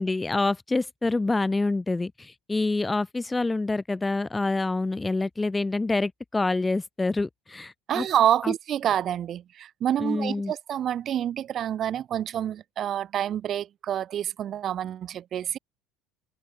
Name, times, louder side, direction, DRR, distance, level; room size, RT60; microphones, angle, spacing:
voice 1, 0.0-8.1 8.4-8.5 10.0-10.5, left 3 dB, 10° left, 1.3 m, -27 dB
voice 2, 7.9-15.6, right 10 dB, 35° right, 6.5 m, -27 dB
open air
cardioid pair, 140°, 0 cm